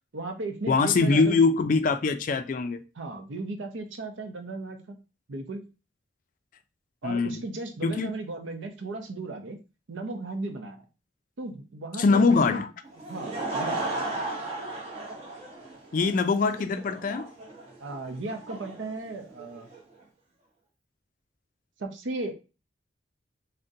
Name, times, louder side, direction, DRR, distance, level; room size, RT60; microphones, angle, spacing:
voice 1, 0.1-1.4 3.0-5.0 5.3-5.6 7.0-9.6 9.9-10.8 11.4-12.6 13.1-13.9 17.8-19.7 21.8-22.3, right 2 dB, 85° right, 0.6 m, -36 dB
voice 2, 0.7-2.8 7.0-7.4 7.8-8.1 12.0-12.7 15.9-17.3, left 4 dB, 45° left, 0.3 m, -23 dB
Laughter / Crowd, 12.8-19.8, right 2 dB, 35° right, 0.7 m, -35 dB
3.7 x 2.1 x 2.6 m
head